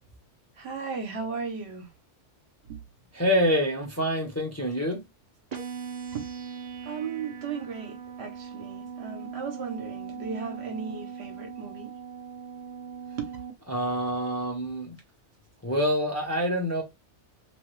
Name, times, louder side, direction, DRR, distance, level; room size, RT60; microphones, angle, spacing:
voice 1, 0.6-1.9 2.6-2.8 6.1-6.3 6.8-11.9 13.2-13.3, right 5 dB, 65° right, 1.0 m, -36 dB
voice 2, 3.1-5.0 13.7-15.0 15.6-16.8, equal, 15° left, 0.7 m, -26 dB
sound 1, 5.5-13.5, right 7 dB, 45° right, 0.6 m, -40 dB
2.9 x 2.2 x 3.0 m
omnidirectional pair, 1.2 m